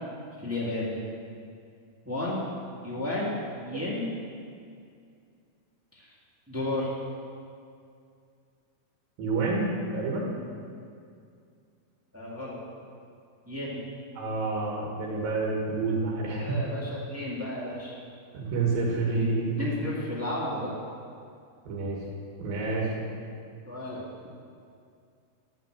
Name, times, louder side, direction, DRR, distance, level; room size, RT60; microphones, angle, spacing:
voice 1, 0.4-1.0 2.0-2.4 2.8-4.1 5.9-6.1 6.5-6.9 12.1-12.6 13.5-13.8 16.4-18.0 19.6-20.7 23.6-24.0, left 1 dB, 5° right, -6 dB, 1.0 m, -32 dB
voice 2, 9.2-10.3 14.2-16.6 18.3-19.5 21.7-22.0 22.4-22.9, right 3 dB, 85° right, -3 dB, 3.4 m, -28 dB
11.0 x 6.0 x 7.5 m, 2.3 s
omnidirectional pair, 4.0 m